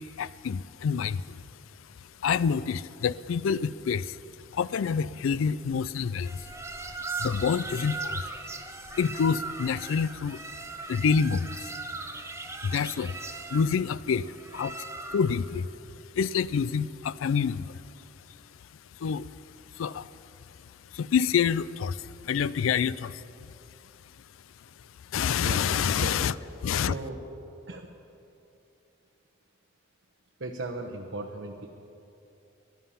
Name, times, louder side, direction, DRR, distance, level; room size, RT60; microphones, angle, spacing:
voice 1, 0.0-1.4 2.2-4.2 4.5-6.5 7.2-8.3 8.9-10.4 10.9-11.7 12.6-13.2 13.5-14.8 15.1-15.7 16.1-17.8 19.0-19.3 19.8-20.1 20.9-23.3 25.1-26.3 26.6-26.9, left 6 dB, 90° left, 19 dB, 0.4 m, -27 dB
sound 1, 6.2-15.5, right 3 dB, 15° right, 0.8 m, -38 dB
voice 2, 26.8-27.2 27.7-27.9 30.4-31.7, right 2 dB, 65° right, 0 dB, 1.0 m, -36 dB
16.5 x 12.0 x 5.7 m, 2.9 s
head